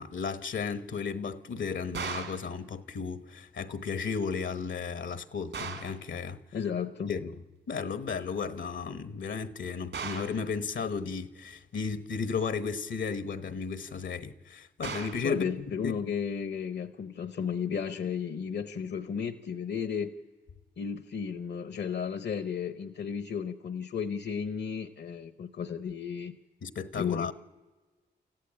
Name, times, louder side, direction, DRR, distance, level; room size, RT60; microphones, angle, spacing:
voice 1, 0.0-6.4 7.1-7.4 7.7-15.5 15.8-15.9 26.6-27.3, left 5 dB, 80° left, 1.2 m, -34 dB
sound 1, 1.9-2.5 5.5-6.0 9.9-10.4 14.8-15.3, right 6 dB, 75° right, 2.6 m, -37 dB
voice 2, 6.5-7.1 15.2-20.1 20.8-26.4 27.0-27.3, left 7 dB, 65° left, 0.9 m, -33 dB
27.5 x 14.5 x 8.8 m
cardioid pair, 55°, 19 cm